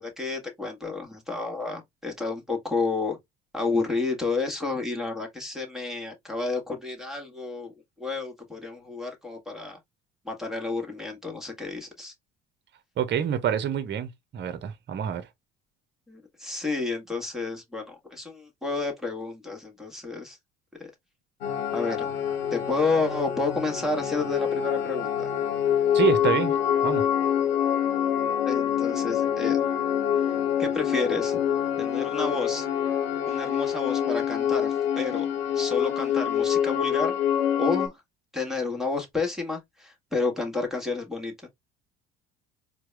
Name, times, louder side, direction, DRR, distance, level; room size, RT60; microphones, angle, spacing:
voice 1, 0.0-3.2 3.5-7.7 8.0-9.8 10.2-12.1 16.1-20.4 20.8-20.9 21.7-22.1 22.5-25.3 28.4-29.6 30.6-31.4 31.8-32.7 33.3-35.3 35.5-37.2 37.6-37.9 38.3-41.5, left 3 dB, ahead, 1.4 m, -30 dB
voice 2, 13.0-15.3 25.9-26.5 26.8-27.1, right 9 dB, 40° right, 0.8 m, -27 dB
sound 1, 21.4-37.9, left 9 dB, 85° left, 1.0 m, -26 dB
4.5 x 2.2 x 3.2 m
hypercardioid pair, 60°, 29 cm